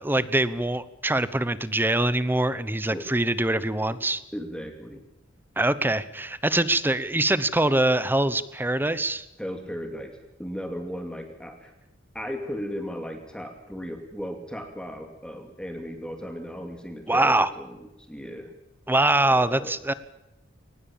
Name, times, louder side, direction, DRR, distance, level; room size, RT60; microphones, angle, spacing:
voice 1, 0.0-4.2 5.6-9.3 17.1-17.5 18.9-19.9, right 1 dB, 10° right, 15 dB, 0.9 m, -23 dB
voice 2, 4.3-5.0 9.4-11.7 12.1-18.5 19.2-19.7, equal, 5° left, 4 dB, 2.5 m, -36 dB
23.0 x 19.5 x 7.2 m, 0.94 s
head